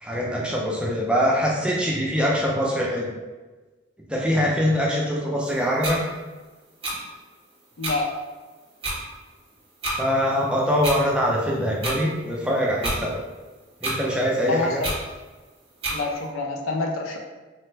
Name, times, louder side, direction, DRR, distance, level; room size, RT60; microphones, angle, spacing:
voice 1, 0.0-3.1 4.1-6.0 9.9-13.2 13.8-14.8, equal, 5° right, -3 dB, 0.3 m, -23 dB
sound 1, 5.8-6.0 6.8-6.9 7.8-7.9 8.8-9.0 9.8-10.0 10.8-11.0 11.8-12.0 12.8-13.0 13.8-14.0 14.8-15.0 15.8-16.0, right 1 dB, 30° right, 0.7 m, -27 dB
voice 2, 7.8-8.1 14.5-14.9 15.9-17.2, left 3 dB, 85° left, 2 dB, 0.5 m, -27 dB
3.1 x 2.1 x 3.1 m, 1.3 s
head